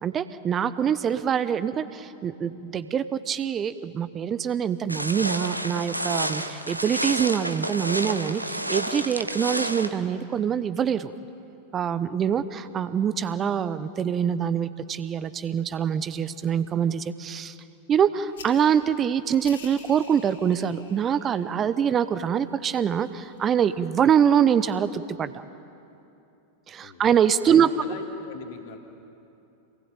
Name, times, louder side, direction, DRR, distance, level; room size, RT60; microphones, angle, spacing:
voice 1, 0.0-11.1 11.7-17.5 17.9-25.4 26.7-27.7, right 8 dB, 25° right, 14 dB, 0.9 m, -24 dB
sound 1, 4.9-9.9, right 1 dB, 85° right, 1.2 m, -30 dB
sound 2, 18.3-24.5, left 5 dB, 65° left, 4.1 m, -50 dB
voice 2, 27.4-28.8, left 7 dB, 50° left, 2 dB, 3.0 m, -40 dB
27.5 x 20.5 x 9.0 m, 2.8 s
figure-of-eight pair, 90°, 0 cm